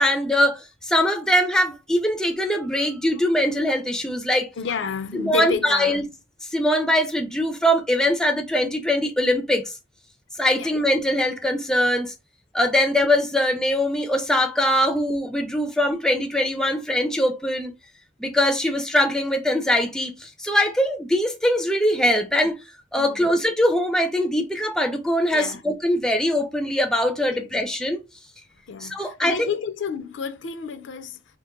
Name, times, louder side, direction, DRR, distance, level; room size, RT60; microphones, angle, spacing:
voice 1, 0.0-4.5 5.1-6.0 6.5-9.7 10.4-12.1 12.5-17.7 18.2-22.6 22.9-28.0 28.8-29.5, left 1 dB, 5° left, 0.4 m, -22 dB
voice 2, 4.6-6.1 10.6-10.7 22.9-23.2 25.3-25.6 27.3-27.5 28.7-31.2, left 6 dB, 70° left, 0.5 m, -31 dB
2.7 x 2.5 x 3.7 m
head